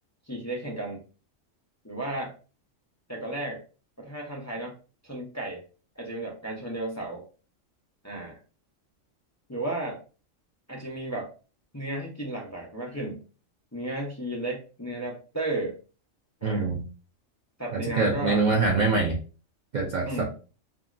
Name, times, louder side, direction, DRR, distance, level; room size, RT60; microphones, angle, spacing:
voice 1, 0.3-1.0 1.8-2.3 3.1-3.6 4.0-4.8 5.0-5.6 6.0-7.2 8.0-8.4 9.5-10.0 10.7-11.3 11.7-13.2 13.7-15.8 16.4-16.7 17.6-18.4 20.0-20.2, right 1 dB, 25° left, -2 dB, 0.3 m, -33 dB
voice 2, 16.4-16.8 17.7-19.2 19.7-20.2, right 3 dB, 90° right, 0 dB, 0.4 m, -24 dB
2.9 x 2.6 x 2.4 m, 0.35 s
omnidirectional pair, 1.4 m